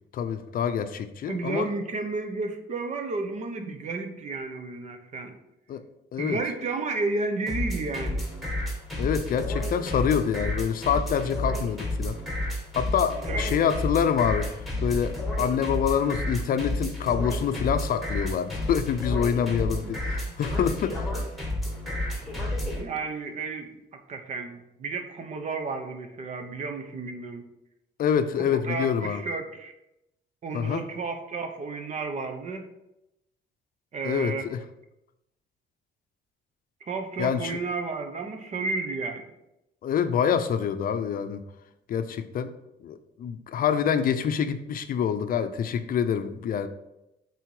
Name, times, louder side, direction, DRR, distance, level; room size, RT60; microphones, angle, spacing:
voice 1, 0.1-1.7 5.7-5.8 6.1-6.4 9.0-12.2 12.7-14.5 14.8-21.1 28.0-29.2 30.5-30.9 34.0-34.6 37.2-37.6 39.8-41.4 41.9-42.5 42.8-46.7, left 8 dB, 50° left, 9 dB, 0.6 m, -26 dB
voice 2, 1.3-5.3 6.2-8.3 13.3-13.4 19.8-19.9 20.3-20.4 22.8-27.5 28.5-29.7 30.4-32.7 33.9-34.5 36.9-39.2, right 3 dB, 40° right, 7 dB, 0.9 m, -32 dB
sound 1, 7.5-22.8, left 1 dB, ahead, 1.8 m, -30 dB
8.2 x 4.2 x 4.8 m, 0.88 s
cardioid pair, 160°, 19 cm